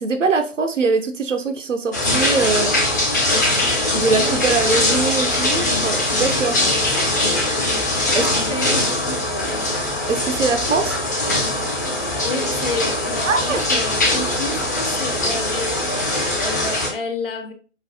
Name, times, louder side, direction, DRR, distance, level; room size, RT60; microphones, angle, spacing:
voice 1, 0.0-2.7 3.9-6.6 8.1-8.3 10.1-11.0 13.2-13.6, right 4 dB, 80° right, 7 dB, 0.7 m, -22 dB
sound 1, 1.9-16.9, left 1 dB, 15° left, 0.4 m, -21 dB
voice 2, 8.1-9.7 12.2-15.8 16.4-17.5, left 3 dB, 45° left, 7 dB, 0.8 m, -30 dB
5.3 x 2.6 x 2.6 m, 0.37 s
figure-of-eight pair, 130°, 37 cm